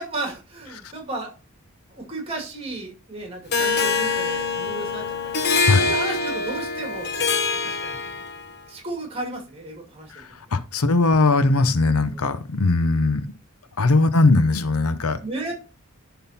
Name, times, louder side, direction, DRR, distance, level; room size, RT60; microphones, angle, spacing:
voice 1, 0.0-1.3 1.9-7.1 7.6-8.0 8.7-10.2 12.1-12.2 15.2-15.5, right 2 dB, 25° right, 2.3 m, -34 dB
Harp, 3.5-8.5, left 4 dB, 50° left, 1.0 m, -24 dB
voice 2, 10.1-13.3 13.8-15.2, left 3 dB, 80° left, 0.8 m, -20 dB
10.5 x 3.9 x 4.2 m
head